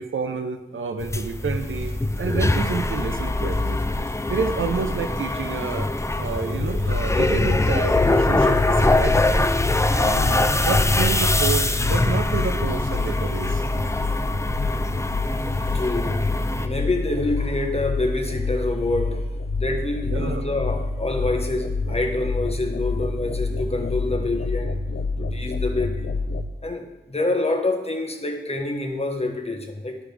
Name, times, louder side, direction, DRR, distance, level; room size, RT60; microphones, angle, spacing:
voice 1, 0.0-3.8 4.3-9.4 10.0-13.6 20.1-20.5, right 5 dB, 90° right, 8 dB, 0.6 m, -29 dB
sound 1, 1.0-16.7, left 2 dB, 15° left, 0.4 m, -23 dB
sound 2, 1.5-15.9, equal, 10° right, 1.6 m, -44 dB
sound 3, 6.6-26.4, left 3 dB, 65° left, 0.5 m, -28 dB
voice 2, 15.7-19.3 19.6-24.8 25.2-26.1 26.6-30.0, left 2 dB, 30° left, 3 dB, 1.1 m, -27 dB
12.0 x 4.9 x 3.4 m, 1.0 s
wide cardioid pair, 65°, 20 cm